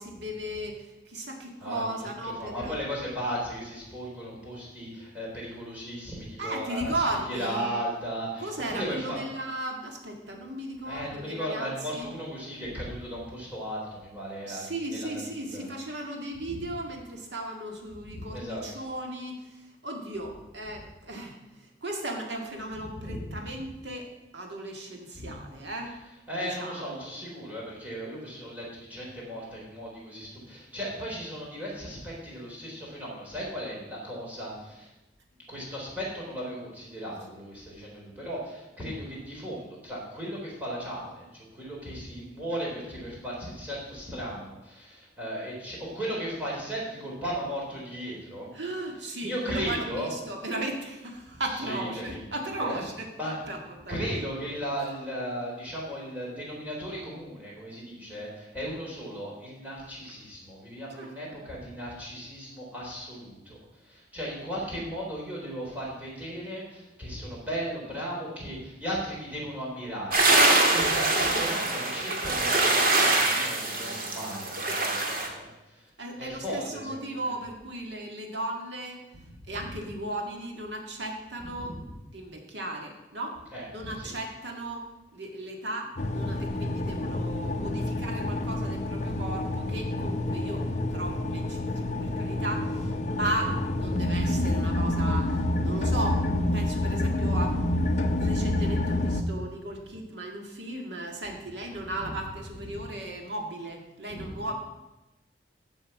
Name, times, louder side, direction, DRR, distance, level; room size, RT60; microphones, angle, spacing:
voice 1, 0.0-2.8 6.4-7.7 8.4-11.7 12.0-12.1 14.5-25.9 26.4-27.0 48.5-53.1 53.5-53.6 53.8-54.0 61.0-61.1 76.0-79.0 79.5-81.8 82.1-83.4 83.7-84.9 85.1-93.5 93.8-104.5, right 1 dB, 75° right, 2 dB, 1.9 m, -36 dB
voice 2, 1.6-9.2 10.8-15.1 15.4-15.7 18.1-18.8 22.8-23.5 25.2-25.3 26.3-34.9 35.5-48.5 49.2-50.1 51.5-52.8 53.2-53.4 53.9-75.9 76.2-77.3 79.3-79.7 81.6-81.8 83.5-84.1 87.4-88.0 93.1-93.2 93.8-94.2 101.8-102.1 102.6-102.8 104.1-104.5, equal, 10° right, -5 dB, 3.7 m, -36 dB
sound 1, 70.1-75.3, right 2 dB, 50° right, 1.7 m, -24 dB
sound 2, 86.0-99.2, left 1 dB, 40° left, 0.7 m, -28 dB
15.0 x 5.6 x 5.8 m, 1.0 s
head